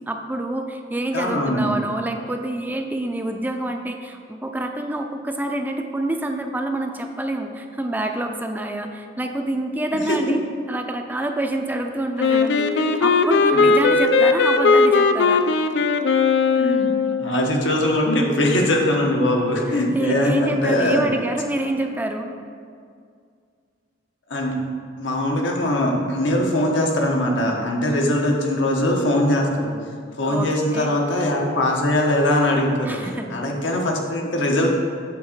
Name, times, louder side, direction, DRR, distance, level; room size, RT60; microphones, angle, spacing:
voice 1, 0.1-10.4 10.7-15.5 19.9-22.3 30.2-30.9 32.9-33.3, right 1 dB, 10° right, 4 dB, 0.4 m, -27 dB
voice 2, 1.1-1.7 10.1-10.2 12.5-12.9 13.5-13.7 16.6-16.9 17.2-21.1 24.3-24.6 25.0-29.7 30.2-34.7, left 1 dB, 90° left, 0 dB, 1.1 m, -21 dB
Wind instrument woodwind instrument, 12.2-17.3, left 4 dB, 65° left, 0.4 m, -18 dB
8.0 x 3.6 x 6.6 m, 2.2 s
head